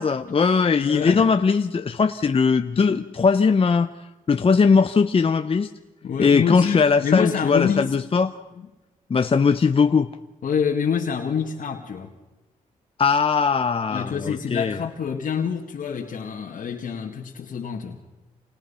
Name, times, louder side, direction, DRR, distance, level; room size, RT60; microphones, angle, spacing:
voice 1, 0.0-3.9 4.3-5.7 6.2-8.3 9.1-10.1 13.0-14.8, left 5 dB, 40° left, 8 dB, 0.9 m, -19 dB
voice 2, 0.8-1.3 2.8-2.9 6.0-7.9 10.4-12.1 13.9-18.0, left 7 dB, 70° left, 0 dB, 2.1 m, -26 dB
28.0 x 27.0 x 5.7 m, 1.1 s
cardioid pair, 65°, 14 cm